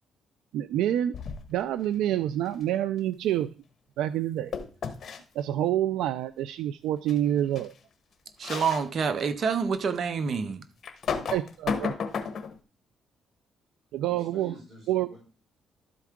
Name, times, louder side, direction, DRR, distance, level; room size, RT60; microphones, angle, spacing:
voice 1, 0.5-1.2 1.5-3.5 4.0-4.5 5.4-7.7 11.3-11.9 13.9-14.5 14.9-15.1, right 12 dB, 90° right, 0.3 m, -27 dB
sound 1, 1.1-1.6 4.5-5.2 7.1-7.2 7.6-7.7 8.4-8.9 9.4-9.5 10.8-12.6, left 6 dB, 55° left, 1.2 m, -32 dB
voice 2, 8.4-10.6, right 6 dB, 55° right, 0.8 m, -27 dB
voice 3, 14.0-15.2, right 1 dB, 35° right, 5.2 m, -49 dB
12.0 x 4.6 x 3.5 m
cardioid pair, 90°, 0 cm